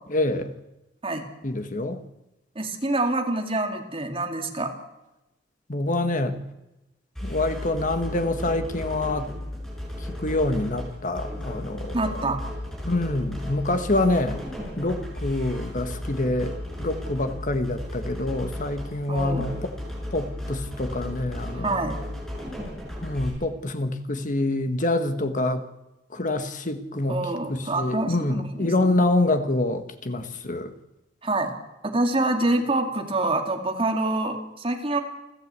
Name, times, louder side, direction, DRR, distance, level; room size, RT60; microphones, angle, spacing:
voice 1, 0.1-0.5 1.4-2.0 5.7-6.4 7.2-9.3 10.1-12.0 12.8-14.4 14.8-19.7 20.1-21.8 23.0-25.6 26.1-27.2 27.5-30.7, left 2 dB, 45° left, 8 dB, 1.6 m, -26 dB
voice 2, 2.6-4.7 11.9-12.4 19.1-19.5 21.5-22.0 27.1-28.7 31.2-31.6 31.8-35.0, right 2 dB, 30° right, 4 dB, 2.4 m, -26 dB
sound 1, 7.1-23.3, left 1 dB, ahead, 7.6 m, -34 dB
29.5 x 12.0 x 8.3 m, 0.97 s
head